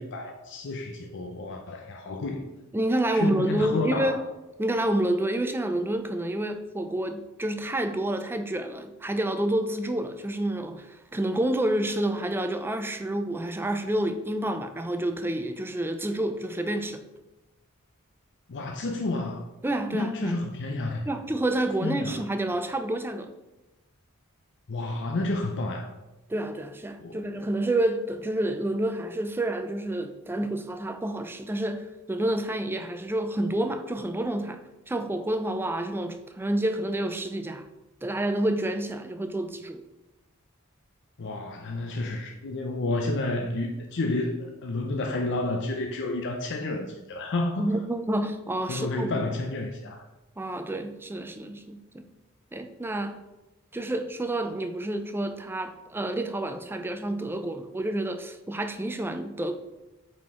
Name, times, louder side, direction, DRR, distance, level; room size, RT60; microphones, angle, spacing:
voice 1, 0.0-2.5 3.1-4.2 18.5-19.4 19.9-21.1 21.8-22.2 24.7-25.9 27.0-27.2 41.2-47.7 48.7-50.1, left 2 dB, 55° left, 0.6 m, -30 dB
voice 2, 2.7-4.2 4.6-17.0 19.6-20.4 21.1-23.3 26.3-37.7 38.0-39.8 47.6-49.2 50.4-52.1 52.5-53.2 53.7-59.5, right 1 dB, 10° right, 0.4 m, -29 dB
8.5 x 4.3 x 3.6 m
head